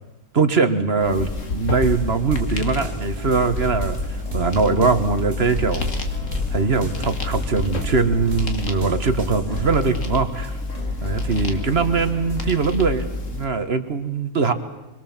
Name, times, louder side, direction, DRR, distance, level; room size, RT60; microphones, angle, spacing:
voice 1, 0.3-5.9 6.5-10.6 11.0-13.0 13.3-14.5, right 4 dB, 45° right, 9 dB, 1.5 m, -21 dB
sound 1, 1.0-13.5, left 3 dB, 55° left, 2.3 m, -29 dB
sound 2, 1.8-9.8, right 1 dB, 30° right, 2.5 m, -32 dB
sound 3, 2.7-12.6, equal, 25° left, 2.7 m, -38 dB
25.5 x 23.0 x 7.3 m, 1.1 s
omnidirectional pair, 1.6 m